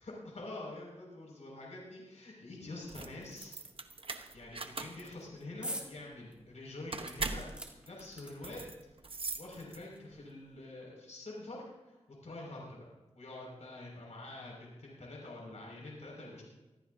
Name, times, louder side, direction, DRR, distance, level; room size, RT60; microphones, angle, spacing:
voice 1, 0.0-3.5 4.3-7.4 7.8-8.6 9.0-12.0 12.2-12.9 13.1-16.4, left 2 dB, 75° left, -3 dB, 6.2 m, -46 dB
sound 1, 2.8-10.1, right 4 dB, 50° right, 1.2 m, -42 dB
sound 2, 5.6-5.9 6.3-6.4 7.0-8.7 9.6-9.7 10.0-10.1, right 1 dB, 10° right, 3.2 m, -44 dB
25.0 x 15.0 x 2.8 m, 1.1 s
wide cardioid pair, 65°, 12 cm